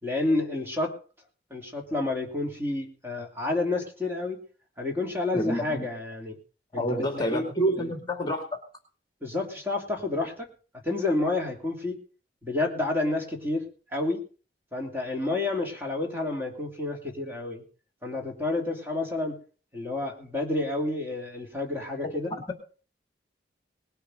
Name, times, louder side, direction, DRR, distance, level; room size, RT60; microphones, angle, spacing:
voice 1, 0.0-0.9 1.5-4.4 4.8-6.4 6.7-7.4 7.8-7.9 9.2-10.5 10.8-12.0 12.4-13.6 13.9-14.2 14.7-17.6 18.0-19.4 19.7-22.3, left 2 dB, 15° right, 1 dB, 3.1 m, -29 dB
voice 2, 5.3-5.9 6.7-8.5 22.0-22.1, right 1 dB, 25° left, 4 dB, 2.4 m, -28 dB
19.5 x 6.8 x 6.4 m, 0.39 s
head